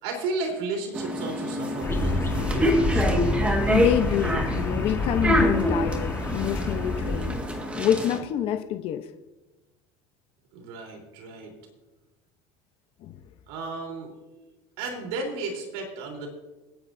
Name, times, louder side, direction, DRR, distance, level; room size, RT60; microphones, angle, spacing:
voice 1, 0.0-3.3 10.5-11.6 13.5-14.1 14.8-16.3, right 3 dB, 90° right, 1 dB, 3.8 m, -34 dB
sound 1, 0.9-8.2, equal, 10° right, 1.8 m, -26 dB
sound 2, 1.8-7.4, left 2 dB, 20° left, 1.6 m, -28 dB
voice 2, 3.7-7.4 7.8-9.1 13.0-13.2, left 11 dB, 50° left, 7 dB, 0.9 m, -27 dB
27.5 x 9.9 x 2.7 m, 1.1 s
cardioid pair, 140°, 12 cm